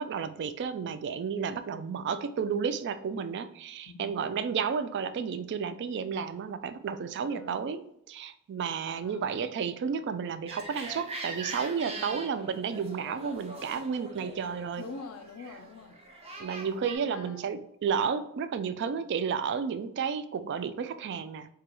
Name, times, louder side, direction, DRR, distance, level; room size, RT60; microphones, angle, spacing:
voice 1, 0.0-14.8 16.4-21.5, right 6 dB, 55° right, 12 dB, 0.3 m, -32 dB
voice 2, 7.2-7.6 9.0-9.5 11.8-12.2 14.8-16.0 17.1-17.4, left 4 dB, 75° left, 6 dB, 0.4 m, -45 dB
sound 1, 10.5-17.0, right 2 dB, 25° right, 0.7 m, -42 dB
4.8 x 2.2 x 3.0 m, 0.72 s
head